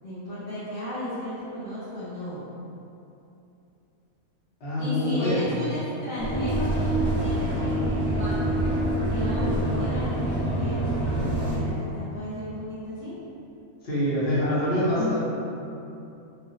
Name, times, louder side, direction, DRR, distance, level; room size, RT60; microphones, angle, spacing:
voice 1, 0.0-2.5 4.8-8.5 9.0-13.2 15.0-15.1, left 1 dB, 90° left, -15 dB, 1.9 m, -34 dB
voice 2, 4.6-5.5 13.8-15.1, left 1 dB, 45° left, -11 dB, 1.1 m, -25 dB
sound 1, 6.2-11.6, right 1 dB, 60° right, 0.4 m, -26 dB
3.5 x 2.2 x 2.7 m, 2.8 s
omnidirectional pair, 1.5 m